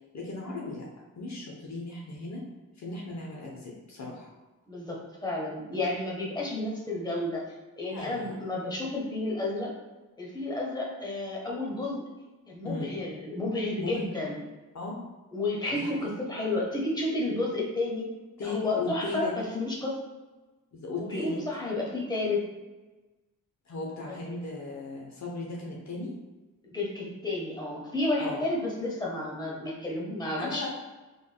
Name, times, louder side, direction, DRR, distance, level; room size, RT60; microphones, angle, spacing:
voice 1, 0.1-0.9 1.2-2.4 2.8-4.3 7.9-8.3 12.6-12.9 13.8-14.0 14.7-15.0 15.7-16.1 18.4-19.3 20.7-21.4 23.7-26.1 28.2-28.4 30.4-30.7, left 2 dB, 50° left, -3 dB, 0.8 m, -37 dB
voice 2, 4.7-7.4 7.8-9.7 10.2-12.0 12.5-14.4 15.3-18.1 18.4-20.0 21.0-22.4 24.1-24.2 26.7-30.7, left 2 dB, 10° left, -3 dB, 1.0 m, -31 dB
3.8 x 3.4 x 2.2 m, 1.2 s
cardioid pair, 75°, 35 cm